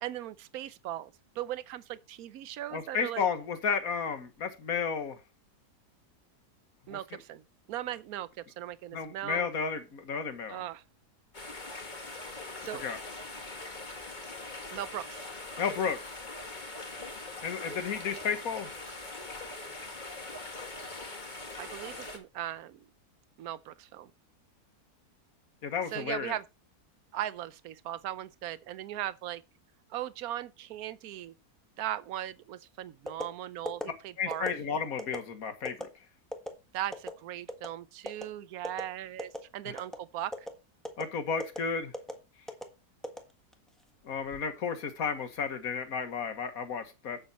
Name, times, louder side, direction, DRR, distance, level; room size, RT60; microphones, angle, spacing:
voice 1, 0.0-3.3 6.9-7.4 7.7-9.5 10.5-10.8 12.6-12.8 14.7-15.2 20.8-20.9 21.6-22.8 23.4-24.1 25.9-26.4 27.1-29.4 29.9-31.3 31.8-34.5 36.7-40.5, right 12 dB, 70° right, 1.1 m, -38 dB
voice 2, 2.7-5.2 6.9-7.0 8.9-10.6 12.8-13.0 15.6-16.0 17.4-18.7 25.6-26.3 34.2-35.9 39.7-39.8 41.0-41.9 44.0-47.2, left 6 dB, 65° left, 1.8 m, -32 dB
sound 1, 11.3-22.2, left 2 dB, 30° left, 1.9 m, -42 dB
sound 2, 33.1-33.3 33.7-33.8 34.3-34.5 35.0-35.2 35.6-35.8 36.3-36.5 36.9-37.1 37.5-37.7 38.1-38.2 38.6-38.8 39.2-39.4 39.8-40.0 40.3-40.5 40.8-41.0 41.4-41.6 41.9-42.1 42.5-42.6 43.0-43.7 44.1-44.4, equal, ahead, 1.3 m, -36 dB
8.8 x 7.7 x 4.2 m
omnidirectional pair, 1.7 m